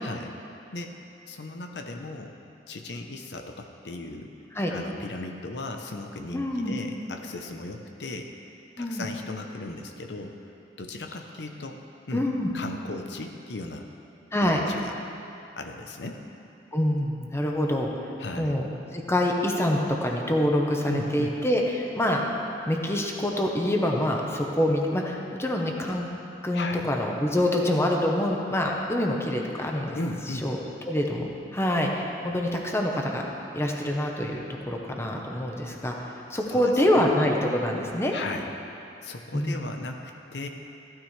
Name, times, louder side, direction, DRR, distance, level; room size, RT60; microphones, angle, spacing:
voice 1, 0.0-0.3 0.7-1.0 1.3-2.3 2.7-4.3 4.7-8.3 8.8-10.3 10.8-11.8 12.1-12.2 12.5-13.9 14.4-14.9 15.5-16.2 18.2-18.6 20.9-21.3 26.5-26.9 29.9-30.5 36.5-36.6 37.0-37.1 38.1-38.5 39.0-40.5, left 2 dB, 75° left, 4 dB, 0.8 m, -36 dB
voice 2, 6.3-6.8 8.8-9.0 12.1-12.5 14.3-14.6 16.7-17.9 18.4-22.2 22.7-26.1 26.4-30.0 30.4-30.6 30.9-33.2 33.5-38.1 39.3-39.6, left 1 dB, 15° left, 0 dB, 1.0 m, -26 dB
15.0 x 12.5 x 3.3 m, 2.8 s
head